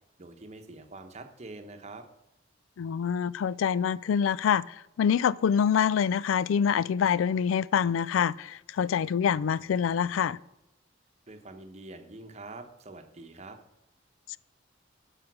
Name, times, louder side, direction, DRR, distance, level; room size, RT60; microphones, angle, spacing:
voice 1, 0.2-2.0 11.3-13.6, right 2 dB, 35° right, 0.9 m, -45 dB
voice 2, 2.8-10.4, left 7 dB, 90° left, 0.3 m, -26 dB
12.0 x 5.0 x 6.1 m
head